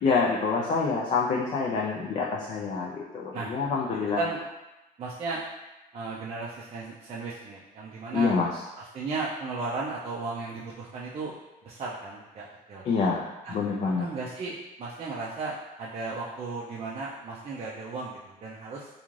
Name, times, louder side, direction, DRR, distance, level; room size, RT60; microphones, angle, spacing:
voice 1, 0.0-4.2 8.1-8.6 12.8-14.1, left 4 dB, 45° left, -3 dB, 0.4 m, -27 dB
voice 2, 5.0-5.4 5.9-8.3 8.8-11.3 11.6-12.8 13.4-13.6 13.9-18.9, right 3 dB, 35° right, -5 dB, 0.4 m, -35 dB
2.4 x 2.3 x 3.1 m, 1.0 s
cardioid pair, 110°, 17 cm